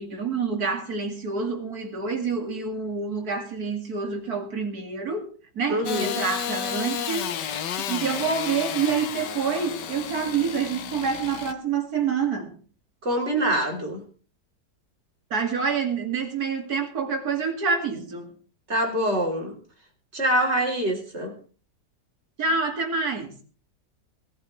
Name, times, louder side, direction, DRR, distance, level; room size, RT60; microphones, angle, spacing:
voice 1, 0.0-5.3 5.5-12.5 15.3-18.3 22.4-23.3, right 5 dB, 60° right, 2.9 m, -27 dB
voice 2, 5.7-6.1 13.0-14.0 18.7-19.5 20.1-21.3, right 1 dB, 35° right, 3.8 m, -25 dB
Engine starting / Sawing, 5.9-11.5, left 8 dB, 75° left, 1.6 m, -32 dB
19.5 x 14.0 x 3.3 m
omnidirectional pair, 1.9 m